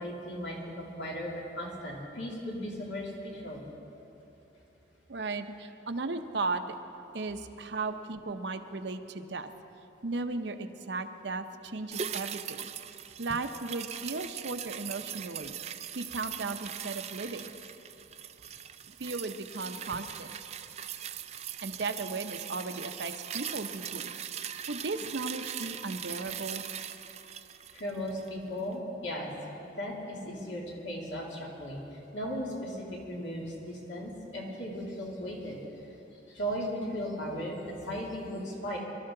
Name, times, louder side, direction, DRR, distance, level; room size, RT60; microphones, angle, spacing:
voice 1, 0.0-3.6 27.7-29.3 29.8-35.6 36.3-38.8, equal, 75° left, -3 dB, 2.8 m, -37 dB
voice 2, 5.1-6.6 7.1-9.5 10.0-12.6 13.2-15.6 15.9-17.5 18.9-20.4 21.6-24.1 24.7-26.6, right 3 dB, 70° right, 8 dB, 0.7 m, -36 dB
sound 1, 11.9-28.4 28.7-28.8, right 9 dB, 35° right, 0.4 m, -40 dB
22.5 x 13.0 x 3.8 m, 3.0 s
head